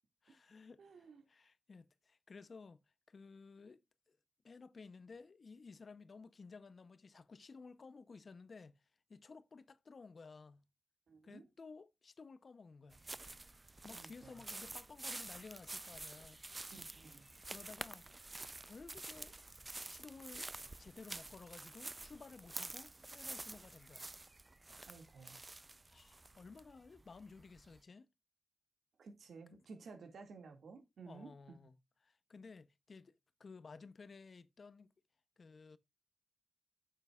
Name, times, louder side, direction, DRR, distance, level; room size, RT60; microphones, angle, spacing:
voice 1, 0.2-2.8 3.1-4.2 4.4-8.8 9.1-10.6 11.2-13.0 13.8-16.4 17.5-18.1 18.6-19.3 19.9-20.5 20.8-24.1 25.9-28.1 29.5-29.6 31.1-31.8 32.0-33.1 33.4-34.9 35.4-35.8, left 4 dB, 50° left, 0.6 m, -55 dB
voice 2, 0.8-1.2 11.1-11.4 13.9-14.4 16.6-17.3 24.9-25.4 29.0-31.3, right 4 dB, 80° right, 1.9 m, -55 dB
sound 1, 12.9-27.8, right 2 dB, 20° right, 0.4 m, -49 dB
9.2 x 7.7 x 2.3 m
wide cardioid pair, 105°, 0 cm